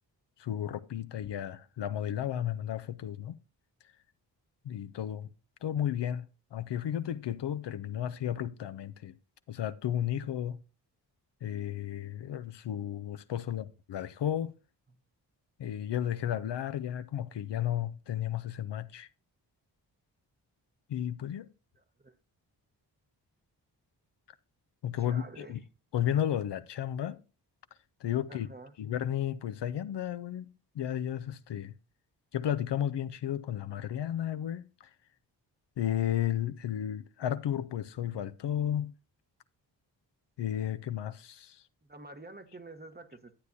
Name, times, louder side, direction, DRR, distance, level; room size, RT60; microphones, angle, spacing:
voice 1, 0.4-3.4 4.6-5.3 5.6-9.2 9.5-10.6 11.4-14.5 15.6-19.1 20.9-21.5 24.8-25.6 25.9-27.2 28.0-28.5 28.8-30.5 30.7-31.8 32.3-34.9 35.8-38.9 40.4-41.6, left 10 dB, 65° left, 0.6 m, -33 dB
voice 2, 21.7-22.2 25.0-25.6 28.3-28.7 41.8-43.4, right 2 dB, 20° right, 1.0 m, -48 dB
11.5 x 8.2 x 2.7 m
supercardioid pair, 40°, 45 cm